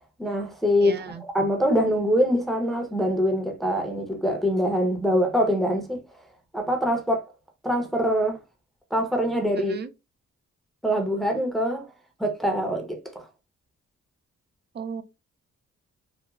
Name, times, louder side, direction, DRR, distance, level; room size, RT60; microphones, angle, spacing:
voice 1, 0.2-1.0 1.3-6.0 6.5-7.2 7.6-8.4 8.9-9.7 10.8-11.9 12.2-13.2, equal, ahead, 0.7 m, -24 dB
voice 2, 0.8-1.2 9.5-9.9 14.7-15.0, right 5 dB, 35° right, 0.5 m, -35 dB
3.1 x 2.1 x 2.3 m
cardioid pair, 75°, 30 cm